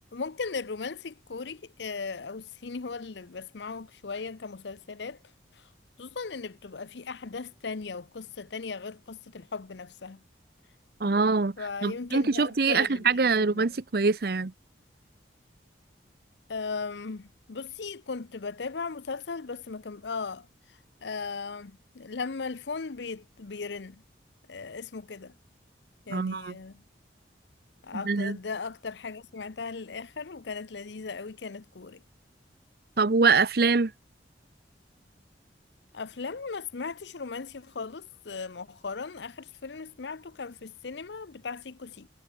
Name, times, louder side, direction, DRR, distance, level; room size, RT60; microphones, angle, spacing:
voice 1, 0.1-5.2 5.5-5.7 6.0-10.2 11.0-11.1 11.6-13.7 16.5-24.0 24.5-25.3 26.1-26.8 27.8-32.0 35.9-42.1, left 4 dB, 75° left, 0.7 m, -37 dB
voice 2, 11.0-11.6 11.8-14.5 26.1-26.5 27.9-28.4 33.0-33.9, right 4 dB, 55° right, 0.7 m, -24 dB
head